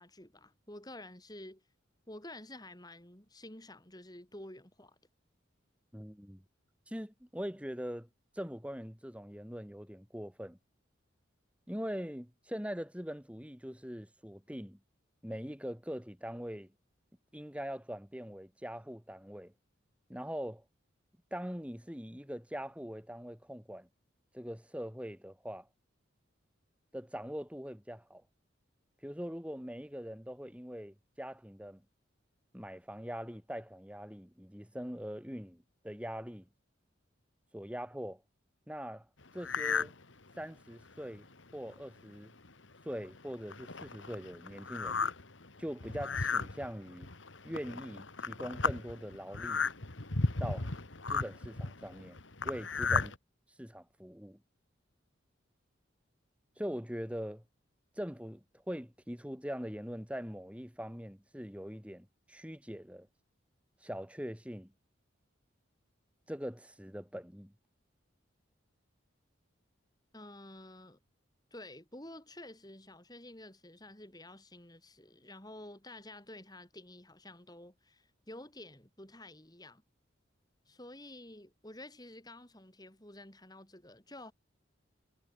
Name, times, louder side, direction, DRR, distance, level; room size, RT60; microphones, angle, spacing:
voice 1, 0.0-1.6 2.1-5.0 70.1-71.0 71.5-79.8 80.7-84.3, left 1 dB, 20° left, 4.5 m, -50 dB
voice 2, 5.9-6.4 6.9-8.1 8.3-10.6 11.7-14.8 15.2-16.7 17.3-19.5 20.1-20.6 21.3-23.9 24.3-25.7 26.9-28.2 29.0-31.8 32.5-36.5 37.5-38.2 38.7-39.1 39.3-39.9 40.4-41.2 41.5-42.3 42.8-45.0 45.6-47.1 47.4-49.7 50.4-50.7 51.1-53.1 53.6-54.4 56.6-57.4 58.0-63.1 63.8-64.7 66.3-67.5, equal, 5° right, 2.5 m, -42 dB
sound 1, 39.4-39.9 40.4-40.5 41.1-41.2 41.5-41.8 42.4-42.5 42.9-53.2, left 4 dB, 75° left, 2.1 m, -35 dB
head